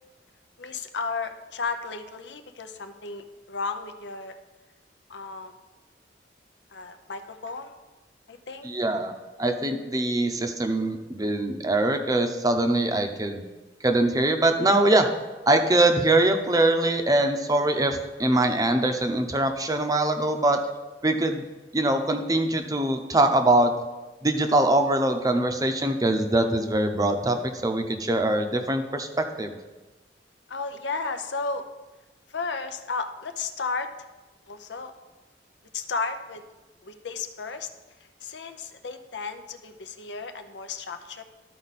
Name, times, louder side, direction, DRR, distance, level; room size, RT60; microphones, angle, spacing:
voice 1, 0.6-4.3 5.1-5.6 6.7-7.7 8.3-8.7 30.5-31.7 32.3-33.9 34.5-34.9 35.7-36.4 36.8-37.7 38.2-41.2, left 4 dB, 85° left, 8 dB, 0.7 m, -33 dB
voice 2, 8.6-9.1 9.4-13.4 13.8-15.1 15.5-20.6 21.0-21.4 21.7-23.7 24.2-29.5, right 2 dB, 20° right, 5 dB, 0.7 m, -23 dB
13.0 x 4.7 x 4.2 m, 1.2 s
head